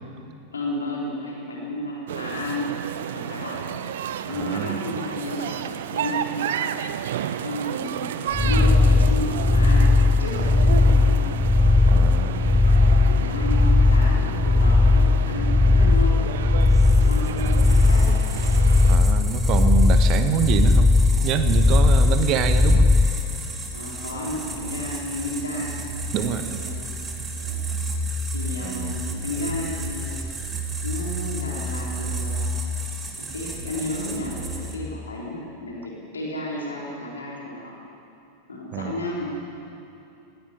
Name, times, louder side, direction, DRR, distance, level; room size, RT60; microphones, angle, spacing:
voice 1, 0.5-2.7 3.0-3.8 4.2-6.6 7.4-11.3 12.6-16.2 17.0-18.1 23.7-25.8 26.3-27.0 27.4-27.6 28.3-30.2 30.8-32.6 33.2-37.7 38.5-39.3, left 1 dB, 75° left, -4 dB, 3.8 m, -32 dB
sound 1, 2.1-19.0, right 9 dB, 60° right, 0.8 m, -32 dB
voice 2, 4.3-4.8 11.9-12.6 18.9-20.9 21.2-22.9 26.1-26.6 28.6-29.0 38.7-38.9, right 8 dB, 40° right, 9 dB, 1.4 m, -26 dB
sound 2, 8.3-23.1, left 3 dB, 5° left, 0.7 m, -17 dB
sound 3, 16.6-35.0, right 1 dB, 15° right, 2.8 m, -32 dB
18.0 x 16.5 x 9.7 m, 2.8 s
figure-of-eight pair, 90°, 0 cm